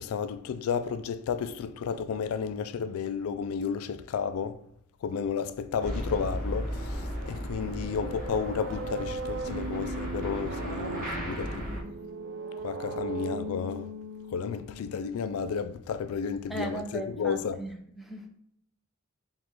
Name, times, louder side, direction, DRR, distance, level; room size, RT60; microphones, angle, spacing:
voice 1, 0.0-4.6 5.0-11.7 12.6-13.9 14.3-17.6, left 6 dB, 75° left, 0.3 m, -32 dB
sound 1, 5.8-11.8, equal, 45° right, 1.4 m, -35 dB
sound 2, 7.5-15.3, right 3 dB, 60° right, 0.5 m, -38 dB
voice 2, 16.5-18.4, right 1 dB, ahead, 0.5 m, -37 dB
5.0 x 2.4 x 4.4 m
head